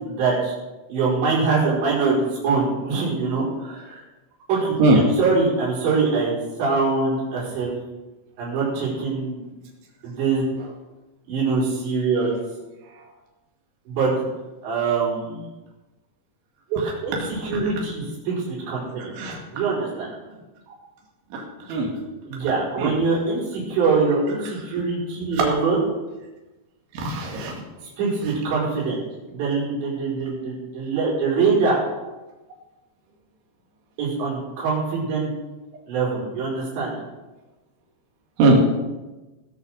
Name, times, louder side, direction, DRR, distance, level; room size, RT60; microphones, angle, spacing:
voice 1, 0.0-0.6 0.9-4.0 4.5-6.3 6.6-7.7 8.4-9.4 10.0-10.4 11.3-12.4 13.9-14.2 14.6-15.5 16.7-19.1 19.5-20.1 22.3-25.9 28.0-29.0 29.3-31.8 34.0-35.3 35.9-36.9, right 4 dB, 75° right, -7 dB, 7.1 m, -23 dB
voice 2, 27.0-27.5 38.4-38.6, right 2 dB, 90° right, -1 dB, 4.7 m, -19 dB
20.0 x 7.0 x 6.6 m, 1.1 s
omnidirectional pair, 5.2 m